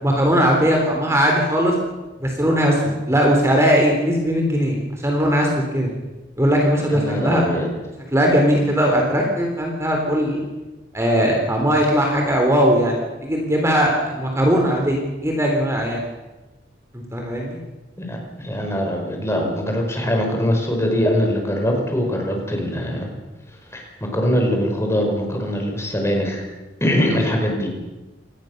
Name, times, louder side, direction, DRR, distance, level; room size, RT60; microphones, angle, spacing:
voice 1, 0.0-1.7 2.2-5.9 6.4-7.4 8.1-10.5 10.9-16.0 16.9-17.6, equal, 15° right, 1 dB, 3.6 m, -19 dB
voice 2, 6.8-7.7 18.0-23.1 23.7-26.4 26.8-27.7, equal, 15° left, 1 dB, 5.4 m, -22 dB
27.0 x 20.0 x 6.7 m, 1.1 s
head